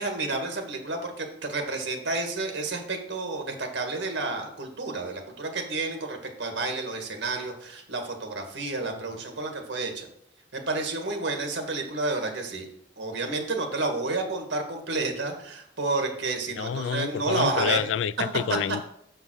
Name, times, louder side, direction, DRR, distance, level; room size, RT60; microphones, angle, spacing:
voice 1, 0.0-10.1 10.5-12.6 13.0-17.8, right 3 dB, 85° right, 1.8 m, -30 dB
voice 2, 16.6-18.8, left 7 dB, 90° left, 0.3 m, -28 dB
6.7 x 5.6 x 6.2 m
head